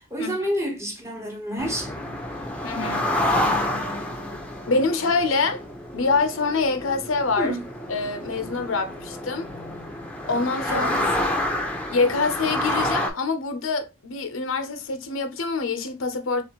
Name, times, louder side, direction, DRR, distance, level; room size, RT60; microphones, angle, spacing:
voice 1, 0.1-1.9 7.4-7.6 10.7-11.0, equal, 15° right, 1.1 m, -28 dB
sound 1, 1.6-13.1, left 1 dB, 5° left, 0.8 m, -28 dB
voice 2, 2.6-3.0 4.7-5.6 5.9-7.6 7.9-9.5 10.3-10.9 11.9-16.4, left 4 dB, 70° left, 0.7 m, -25 dB
4.2 x 3.2 x 2.9 m
head